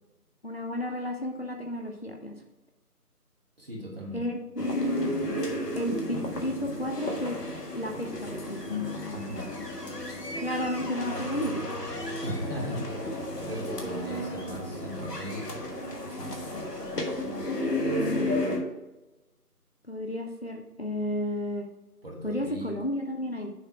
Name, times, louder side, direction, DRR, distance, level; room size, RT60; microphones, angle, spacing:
voice 1, 0.4-2.3 4.1-5.1 5.7-7.4 7.7-8.8 10.4-12.1 17.9-18.3 19.9-21.7 22.2-23.5, left 1 dB, 40° left, 2 dB, 0.7 m, -32 dB
voice 2, 3.6-4.2 9.1-9.5 12.2-15.6 16.0-16.3 22.0-22.7, equal, 40° right, -2 dB, 1.6 m, -38 dB
sound 1, 4.6-18.6, left 1 dB, 90° left, 1.7 m, -33 dB
6.8 x 4.5 x 4.5 m, 1.0 s
figure-of-eight pair, 165°, 46 cm